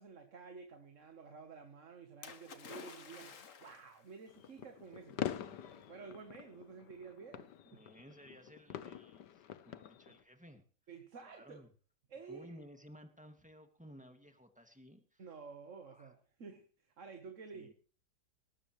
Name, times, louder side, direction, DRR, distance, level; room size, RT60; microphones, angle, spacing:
voice 1, 0.0-7.8 10.9-11.7 12.1-12.5 15.2-17.7, right 5 dB, 50° right, 1.6 m, -52 dB
Splash splatter, 2.2-4.0 5.0-5.1, left 6 dB, 50° left, 1.5 m, -51 dB
sound 1, 4.3-10.2, left 10 dB, 80° left, 1.5 m, -45 dB
voice 2, 7.7-10.6 11.2-11.7 12.3-15.2 15.8-16.1 17.5-17.7, equal, 5° right, 2.0 m, -56 dB
19.0 x 14.0 x 3.2 m
omnidirectional pair, 1.8 m